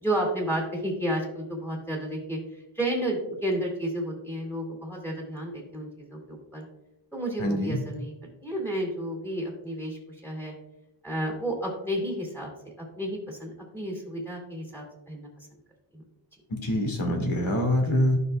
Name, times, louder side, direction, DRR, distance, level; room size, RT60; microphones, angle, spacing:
voice 1, 0.0-6.6 7.1-8.1 8.4-10.5 11.0-12.5 12.8-15.5 15.9-16.0, right 1 dB, 5° left, -2 dB, 2.1 m, -32 dB
voice 2, 7.4-7.8 16.5-18.2, left 1 dB, 75° left, 2 dB, 1.9 m, -25 dB
12.0 x 5.6 x 2.2 m, 0.89 s
wide cardioid pair, 125°, 48 cm